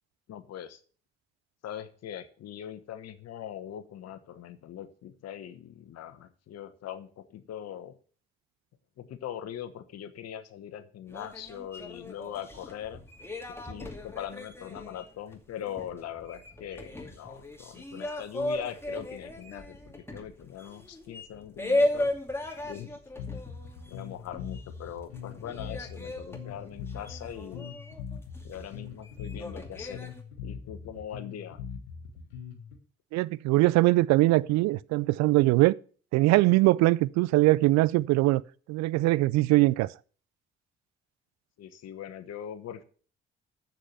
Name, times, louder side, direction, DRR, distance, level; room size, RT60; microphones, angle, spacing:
voice 1, 0.3-0.8 1.6-8.0 9.0-13.0 13.6-22.1 22.7-23.0 23.9-27.7 28.4-30.1 30.4-31.6 41.6-42.8, left 10 dB, 60° left, 1.1 m, -41 dB
sound 1, 11.1-24.8 25.1-30.2, left 1 dB, 10° left, 2.4 m, -36 dB
Bass guitar, 23.2-32.8, left 7 dB, 85° left, 1.4 m, -41 dB
voice 2, 33.1-35.8 36.1-38.4 38.7-39.9, right 19 dB, 65° right, 0.5 m, -22 dB
7.5 x 6.5 x 7.0 m
hypercardioid pair, 45°, 29 cm